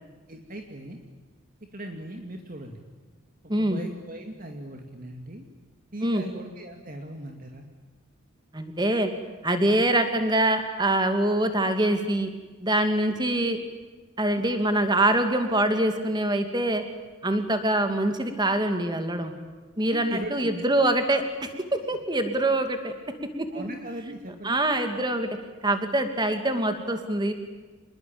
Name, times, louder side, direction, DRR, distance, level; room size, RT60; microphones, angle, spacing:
voice 1, 0.3-1.0 1.7-2.8 3.6-5.4 5.9-7.6 19.9-20.5 23.5-24.6, right 1 dB, 40° right, 3 dB, 2.4 m, -39 dB
voice 2, 8.5-9.1 9.4-12.3 12.6-13.6 14.2-16.8 17.2-19.3 19.8-22.9 23.4-23.7 24.4-25.3 25.6-27.3, right 1 dB, 20° right, 7 dB, 2.6 m, -24 dB
26.5 x 21.5 x 8.9 m, 1.3 s
head